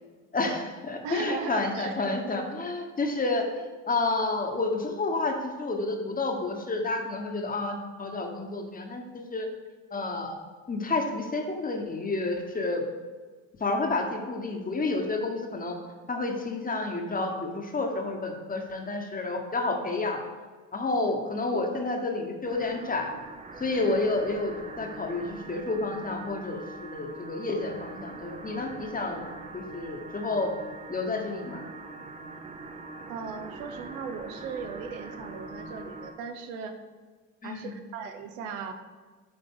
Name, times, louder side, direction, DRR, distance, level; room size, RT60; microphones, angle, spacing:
voice 1, 0.3-9.0 9.3-9.5 9.9-10.3 10.7-12.8 13.6-15.8 16.1-20.2 20.7-23.1 23.6-26.6 26.9-29.2 29.5-30.5 30.9-31.6 37.4-37.8, left 3 dB, 20° left, 3 dB, 1.0 m, -30 dB
voice 2, 1.0-1.9 21.0-21.1 23.8-24.0 33.1-36.8 37.4-38.7, right 5 dB, 90° right, 7 dB, 0.7 m, -37 dB
sound 1, 22.4-36.2, right 2 dB, 20° right, 0.5 m, -43 dB
8.6 x 3.5 x 3.7 m, 1.4 s
supercardioid pair, 80°, 38 cm